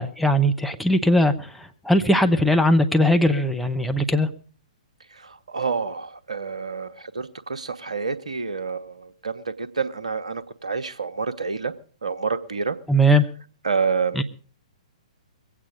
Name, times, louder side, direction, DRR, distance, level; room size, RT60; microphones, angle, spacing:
voice 1, 0.0-4.3 12.9-13.2 14.2-14.3, equal, ahead, 4 dB, 0.9 m, -19 dB
voice 2, 5.1-11.7 12.0-12.8 13.6-14.2, right 5 dB, 70° right, 10 dB, 1.1 m, -28 dB
22.0 x 8.7 x 5.2 m, 0.42 s
figure-of-eight pair, 120°, 4 cm